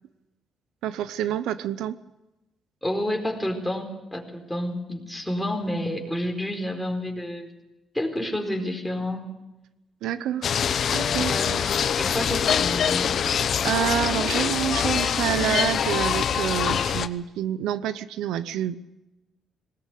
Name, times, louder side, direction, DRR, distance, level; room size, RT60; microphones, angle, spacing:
voice 1, 0.8-2.0 10.0-10.5 10.9-11.3 13.6-18.8, right 11 dB, 90° right, 14 dB, 0.7 m, -27 dB
voice 2, 2.8-7.5 7.9-9.3 10.2-10.3 11.3-11.6 11.9-13.1, left 1 dB, 5° left, 2 dB, 4.6 m, -29 dB
sound 1, 10.4-17.1, left 8 dB, 60° left, 0.9 m, -24 dB
19.5 x 19.0 x 8.4 m, 1.0 s
cardioid pair, 90°, 0 cm